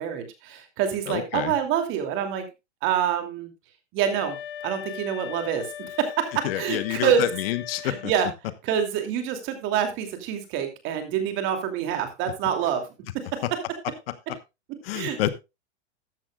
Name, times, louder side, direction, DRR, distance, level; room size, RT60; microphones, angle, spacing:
voice 1, 0.0-2.4 2.8-3.5 3.9-4.4 4.6-7.2 7.8-8.3 8.6-12.8 14.9-15.2, right 9 dB, 35° right, 7 dB, 2.7 m, -26 dB
voice 2, 1.1-1.6 6.4-8.1 14.8-15.3, left 13 dB, 55° left, 14 dB, 1.1 m, -28 dB
sound 1, 4.1-8.2, left 11 dB, 75° left, 2.4 m, -39 dB
14.0 x 10.5 x 2.3 m, 0.24 s
hypercardioid pair, 150°, 36 cm